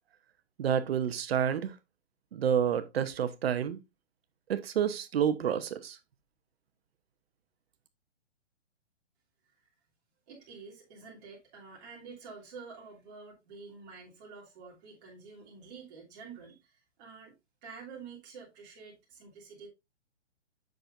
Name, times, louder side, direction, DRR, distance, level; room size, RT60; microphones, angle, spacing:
voice 1, 0.6-1.7 2.3-3.8 4.5-6.0, right 8 dB, 55° right, 1.0 m, -29 dB
voice 2, 10.3-17.3 17.6-19.7, right 5 dB, 35° right, 2.9 m, -49 dB
7.7 x 5.9 x 2.5 m
hypercardioid pair, 155°, 36 cm